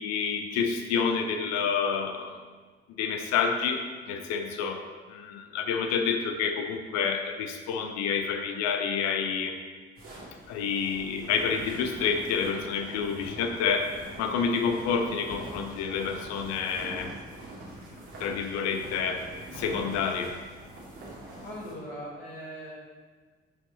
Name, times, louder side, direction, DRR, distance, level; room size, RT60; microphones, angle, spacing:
voice 1, 0.0-2.4 3.0-9.5 10.5-17.1 18.2-19.2 19.5-20.3, left 6 dB, 55° left, 5 dB, 0.9 m, -29 dB
sound 1, 9.9-21.7, right 1 dB, 50° right, 2.3 m, -44 dB
voice 2, 21.4-22.7, equal, 80° left, -10 dB, 1.6 m, -40 dB
7.9 x 5.4 x 3.9 m, 1.4 s
figure-of-eight pair, 45°, 30 cm